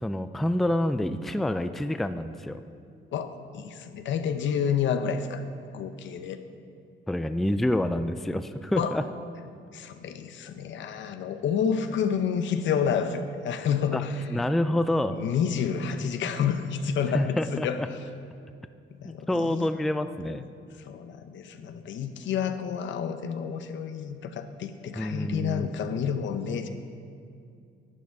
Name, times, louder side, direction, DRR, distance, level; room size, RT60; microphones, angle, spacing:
voice 1, 0.0-2.6 7.1-9.1 13.9-14.0 14.3-15.2 17.1-17.9 19.0-20.5 25.0-25.7, left 1 dB, ahead, 10 dB, 0.4 m, -27 dB
voice 2, 3.1-5.4 5.7-6.4 8.8-9.0 9.7-14.3 15.1-18.0 19.0-19.7 20.8-26.7, left 7 dB, 70° left, 9 dB, 0.8 m, -29 dB
11.0 x 9.5 x 4.7 m, 2.5 s
cardioid pair, 90°, 20 cm